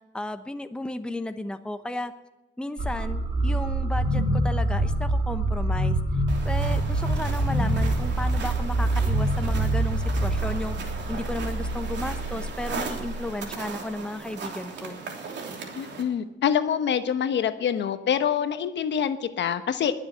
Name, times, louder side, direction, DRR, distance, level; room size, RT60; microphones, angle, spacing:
voice 1, 0.1-2.1 2.6-6.0 6.4-10.8 11.1-15.0, left 1 dB, 5° left, 8 dB, 0.9 m, -34 dB
sound 1, 2.8-13.7, right 1 dB, 30° right, 3.5 m, -26 dB
sound 2, 6.3-16.0, right 4 dB, 60° right, 3.1 m, -38 dB
voice 2, 15.7-19.9, left 8 dB, 65° left, 10 dB, 1.1 m, -25 dB
20.5 x 7.4 x 7.9 m, 1.1 s
cardioid pair, 90°, 20 cm